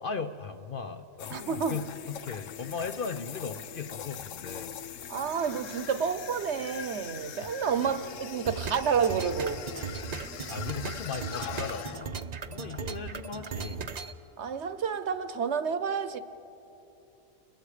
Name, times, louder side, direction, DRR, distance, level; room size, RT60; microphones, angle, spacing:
voice 1, 0.0-4.7 7.8-8.0 10.5-12.2 12.5-13.9, left 5 dB, 50° left, 0.7 m, -37 dB
sound 1, 1.2-12.1, left 9 dB, 75° left, 1.1 m, -42 dB
voice 2, 1.3-1.8 5.1-9.6 14.4-16.2, right 6 dB, 65° right, 1.1 m, -29 dB
sound 2, 8.5-14.1, right 6 dB, 45° right, 0.6 m, -37 dB
29.5 x 21.5 x 5.0 m
omnidirectional pair, 1.3 m